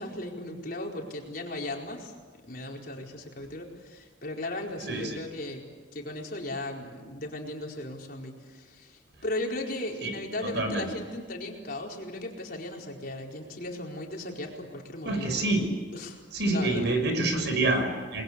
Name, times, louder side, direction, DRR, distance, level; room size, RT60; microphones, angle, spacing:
voice 1, 0.0-2.1 2.4-5.6 5.9-15.5 15.9-16.2 16.5-16.9, left 1 dB, 50° left, 0 dB, 4.6 m, -36 dB
voice 2, 4.9-5.2 10.0-10.1 10.4-10.9 15.0-15.6 16.3-18.2, right 2 dB, 65° right, 5 dB, 6.1 m, -27 dB
30.0 x 21.5 x 8.4 m, 1.5 s
head